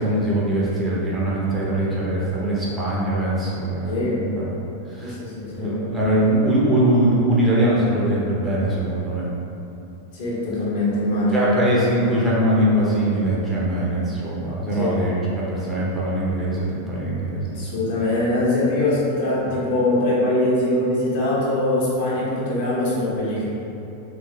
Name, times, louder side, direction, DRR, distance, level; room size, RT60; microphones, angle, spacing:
voice 1, 0.0-4.5 4.9-5.2 5.6-9.3 11.3-15.1 15.5-17.7, right 1 dB, 10° right, -7 dB, 0.6 m, -22 dB
voice 2, 3.8-4.3 5.0-5.8 10.1-11.5 14.7-15.0 17.5-23.4, left 1 dB, 50° left, -7 dB, 0.8 m, -22 dB
3.0 x 2.4 x 2.8 m, 2.9 s
figure-of-eight pair, 90°, 0 cm